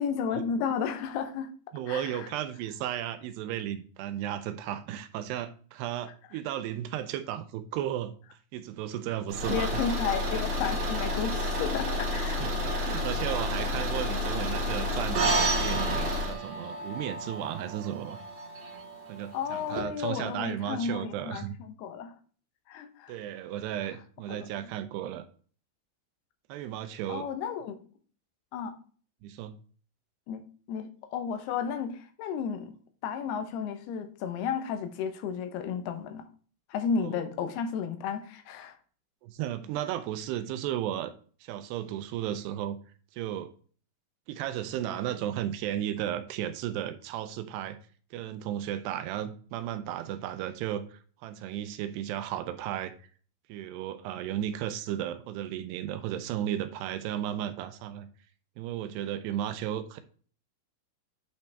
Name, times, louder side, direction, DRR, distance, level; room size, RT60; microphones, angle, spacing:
voice 1, 0.0-1.5 1.9-2.3 9.5-12.4 19.3-22.1 22.7-23.1 24.3-24.4 27.1-27.8 28.5-28.8 30.3-30.4 30.7-32.7 33.0-36.2 36.7-38.8, left 6 dB, 75° left, 2.7 m, -33 dB
voice 2, 1.7-8.1 8.5-9.7 12.4-18.2 19.1-21.6 23.1-25.2 26.5-27.3 29.2-29.5 37.0-37.2 39.2-41.1 41.4-42.8 43.1-43.5 44.3-47.8 48.1-52.9 53.5-58.1 58.6-60.0, right 11 dB, 80° right, 2.6 m, -34 dB
Car / Engine, 9.3-16.4, left 1 dB, 40° right, 2.6 m, -30 dB
sound 1, 15.1-19.8, right 4 dB, 60° right, 2.0 m, -32 dB
8.9 x 5.5 x 3.4 m
omnidirectional pair, 5.1 m